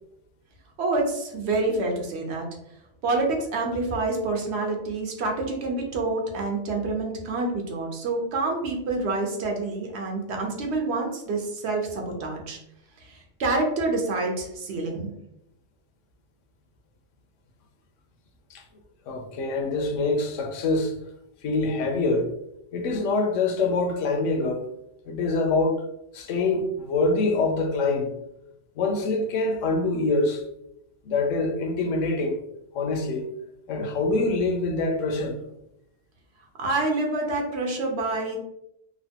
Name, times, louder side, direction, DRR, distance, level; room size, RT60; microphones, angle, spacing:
voice 1, 0.8-2.5 3.0-12.6 13.0-15.1 36.6-38.4, right 2 dB, 65° right, 0.9 m, -27 dB
voice 2, 19.1-20.9 21.4-22.3 22.7-24.6 25.1-25.8 26.1-28.1 28.8-30.4 31.1-32.4 32.7-33.3 33.7-35.4, left 3 dB, 85° left, 0.9 m, -25 dB
3.0 x 2.1 x 2.7 m
omnidirectional pair, 1.3 m